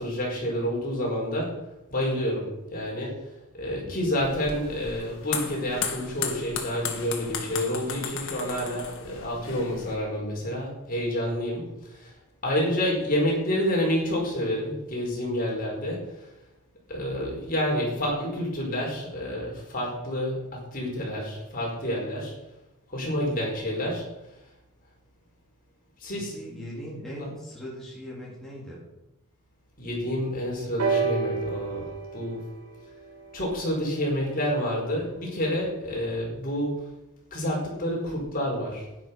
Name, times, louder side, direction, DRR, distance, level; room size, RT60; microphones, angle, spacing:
voice 1, 0.0-1.6 1.9-3.2 3.6-12.1 12.4-16.0 16.9-22.3 22.9-24.0 26.0-26.3 29.8-32.4 33.3-36.8 37.3-38.9, equal, 40° left, -2 dB, 4.9 m, -29 dB
sound 1, 4.2-10.0, left 6 dB, 60° left, 1.9 m, -35 dB
voice 2, 26.1-28.8, equal, ahead, -7 dB, 3.4 m, -40 dB
sound 2, 30.8-34.6 35.6-35.7, right 5 dB, 85° right, 2.8 m, -31 dB
11.5 x 10.5 x 5.5 m, 0.93 s
head